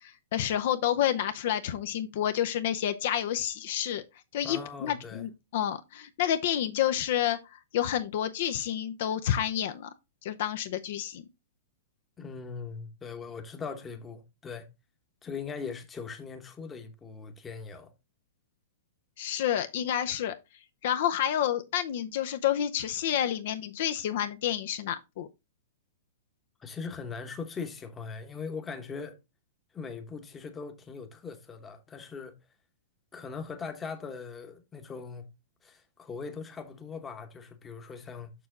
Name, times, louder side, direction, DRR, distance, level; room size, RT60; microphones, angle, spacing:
voice 1, 0.0-4.0 4.3-9.9 10.2-11.3 19.2-20.3 20.8-25.3, left 10 dB, 55° left, 0.6 m, -29 dB
voice 2, 4.4-5.2 12.2-14.7 15.2-17.9 26.6-29.2 29.7-32.3 33.1-35.3 35.6-38.3, left 5 dB, 15° left, 1.0 m, -40 dB
6.7 x 5.9 x 3.6 m
hypercardioid pair, 155°, 0 cm